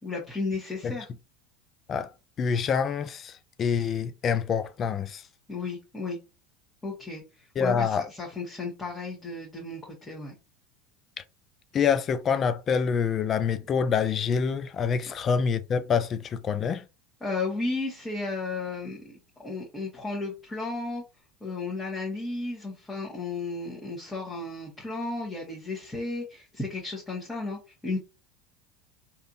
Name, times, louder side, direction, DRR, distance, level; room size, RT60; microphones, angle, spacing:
voice 1, 0.0-1.1 5.5-6.2 6.8-7.2 7.6-10.3 17.2-21.0 21.4-28.0, left 3 dB, 15° left, 1.6 m, -34 dB
voice 2, 2.4-3.3 3.6-5.2 7.6-8.0 11.7-16.8, left 6 dB, 35° left, 0.4 m, -26 dB
3.3 x 2.9 x 2.6 m
hypercardioid pair, 90°, 0 cm